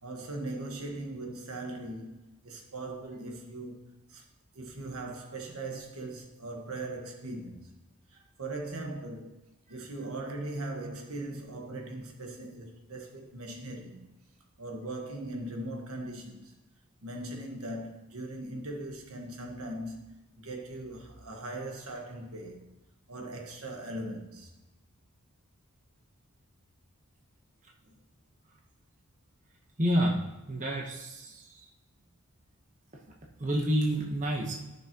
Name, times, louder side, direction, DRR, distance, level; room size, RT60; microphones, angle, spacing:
voice 1, 0.0-2.2 2.4-4.2 4.5-7.7 8.1-9.4 9.7-14.1 14.6-16.5 17.0-20.0 20.4-22.7 23.1-24.5 27.8-27.9, right 2 dB, 75° right, 1.5 m, -39 dB
voice 2, 29.8-30.2 30.5-31.4 33.4-34.5, equal, 35° right, 1.1 m, -28 dB
14.0 x 5.9 x 3.0 m
head